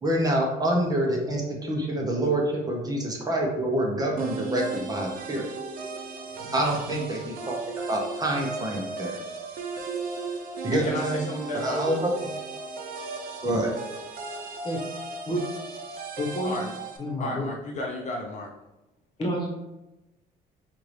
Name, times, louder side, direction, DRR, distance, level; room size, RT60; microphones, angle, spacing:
voice 1, 0.0-5.5 6.5-7.6 7.9-9.2 10.6-11.2 11.5-12.0 13.4-13.7, right 1 dB, 20° right, -1 dB, 0.8 m, -27 dB
sound 1, 4.2-17.0, right 3 dB, 55° right, 0.7 m, -36 dB
voice 2, 10.7-12.0 16.4-16.8 17.2-18.5, left 1 dB, 45° left, 0 dB, 0.6 m, -33 dB
voice 3, 16.2-16.6 17.0-17.4 19.2-19.5, equal, 25° left, -1 dB, 1.2 m, -29 dB
4.5 x 2.5 x 3.3 m, 0.98 s
cardioid pair, 110°, 17 cm